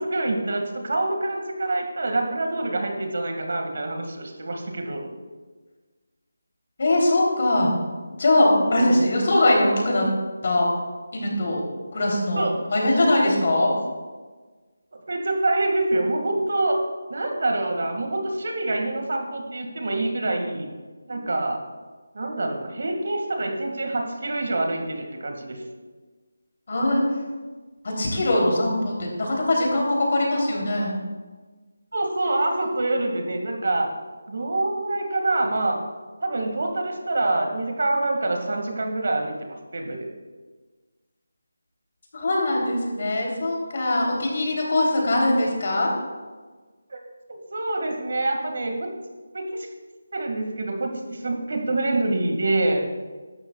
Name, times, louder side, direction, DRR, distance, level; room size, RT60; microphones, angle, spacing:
voice 1, 0.0-5.1 8.6-9.1 12.4-12.7 15.1-16.8 17.1-20.7 21.1-21.6 22.1-25.6 31.9-33.9 34.3-35.8 36.2-40.1 42.2-42.3 46.9-47.0 47.3-48.9 49.3-49.7 50.1-52.8, right 2 dB, 60° right, 3 dB, 2.0 m, -26 dB
voice 2, 6.8-7.7 8.2-10.1 10.4-10.7 11.1-11.6 11.9-12.4 12.7-13.7 21.1-21.2 26.7-27.0 28.0-31.0 42.1-45.9, left 1 dB, 45° left, -1 dB, 3.3 m, -21 dB
15.0 x 12.0 x 2.4 m, 1.4 s
figure-of-eight pair, 170°, 0 cm